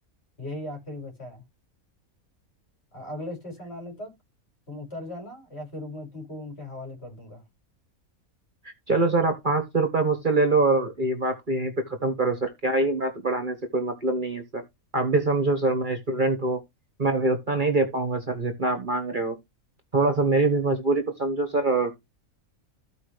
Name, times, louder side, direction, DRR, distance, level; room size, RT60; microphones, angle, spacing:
voice 1, 0.4-1.4 2.9-4.1 4.7-7.4, left 1 dB, 45° left, 6.3 m, -38 dB
voice 2, 8.9-14.6 14.9-16.6 17.0-19.3 19.9-21.9, right 2 dB, 35° right, 1.8 m, -24 dB
15.0 x 5.3 x 3.3 m
omnidirectional pair, 1.5 m